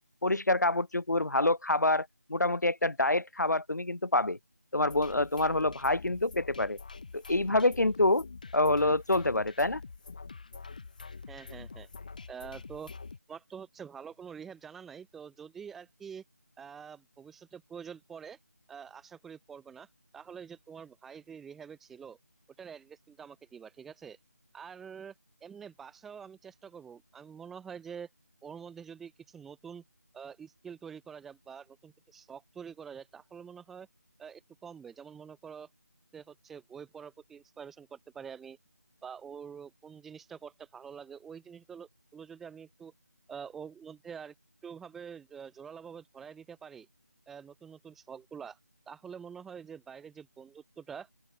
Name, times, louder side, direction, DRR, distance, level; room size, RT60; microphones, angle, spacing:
voice 1, 0.2-4.4 4.7-6.8 7.1-8.2 8.5-9.8, left 2 dB, 85° left, 7.6 m, -27 dB
sound 1, 4.8-13.2, left 4 dB, 30° left, 7.9 m, -46 dB
voice 2, 11.3-11.9 12.3-12.9 13.3-16.2 16.6-18.4 18.7-19.9 20.1-22.2 22.6-24.2 24.5-25.1 25.4-28.1 28.4-29.8 30.1-33.9 34.2-35.7 36.1-38.6 39.0-42.9 43.3-44.3 44.6-46.9 47.3-48.6 48.9-51.1, right 7 dB, ahead, 3.4 m, -46 dB
open air
figure-of-eight pair, 180°, 9 cm